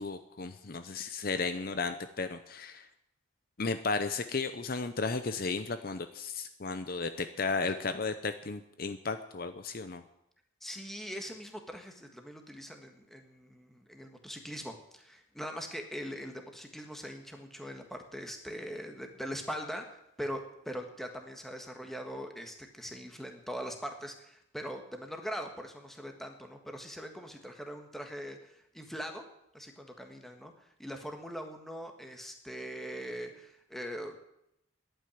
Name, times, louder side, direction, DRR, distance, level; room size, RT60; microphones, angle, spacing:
voice 1, 0.0-2.9 3.6-10.0, left 4 dB, 45° left, 10 dB, 0.7 m, -34 dB
voice 2, 10.6-29.2 29.5-34.2, equal, ahead, 4 dB, 1.5 m, -41 dB
11.0 x 9.0 x 9.9 m, 0.82 s
head